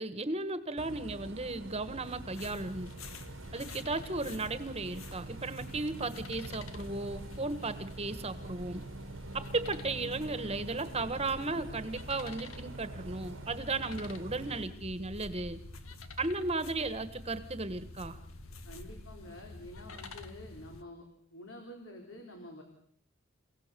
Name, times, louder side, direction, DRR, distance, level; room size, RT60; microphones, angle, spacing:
voice 1, 0.0-2.9 3.5-8.8 9.3-15.6 16.2-18.2, right 3 dB, 30° right, 12 dB, 1.5 m, -35 dB
Bus, 0.8-14.6, right 2 dB, 65° right, 1.4 m, -46 dB
sound 1, 2.0-20.8, left 2 dB, 85° left, 1.9 m, -48 dB
voice 2, 18.7-21.0 21.3-22.6, left 1 dB, 65° left, 2 dB, 4.0 m, -48 dB
29.0 x 17.0 x 6.9 m, 0.64 s
head